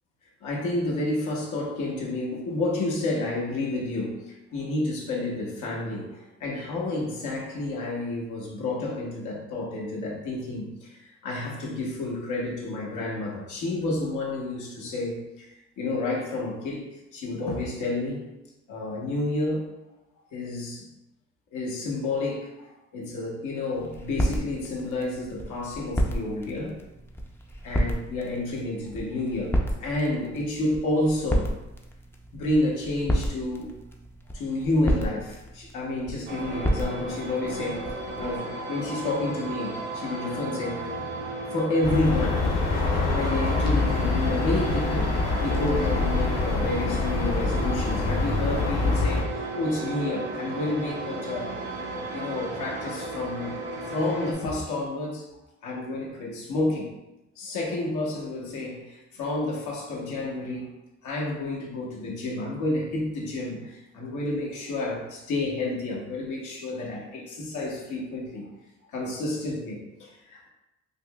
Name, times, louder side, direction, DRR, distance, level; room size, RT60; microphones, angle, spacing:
voice 1, 0.4-18.3 18.7-19.7 20.3-20.9 21.5-26.8 27.6-31.5 32.3-33.7 34.3-40.9 41.5-42.5 43.1-51.6 52.1-56.9 57.4-60.7 61.0-68.5 68.9-70.5, left 2 dB, 80° left, -3 dB, 1.0 m, -30 dB
sound 1, 23.7-38.4, equal, 10° left, 0.4 m, -32 dB
sound 2, 36.3-54.3, right 2 dB, 85° right, 0.9 m, -35 dB
sound 3, 41.8-49.2, left 3 dB, 60° left, 0.8 m, -25 dB
5.2 x 2.1 x 2.3 m, 0.94 s
cardioid pair, 90°, 30 cm